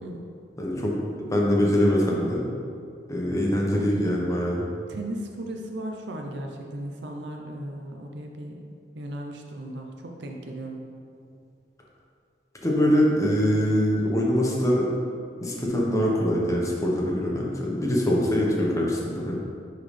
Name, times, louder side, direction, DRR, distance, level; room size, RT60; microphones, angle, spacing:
voice 1, 0.0-0.3 3.6-4.1 4.9-8.6 8.9-10.8, right 1 dB, 70° right, 2 dB, 0.6 m, -36 dB
voice 2, 0.6-2.4 3.1-4.6 12.6-14.9 15.4-19.4, equal, 20° left, -3 dB, 1.0 m, -23 dB
10.5 x 3.9 x 3.3 m, 2.3 s
head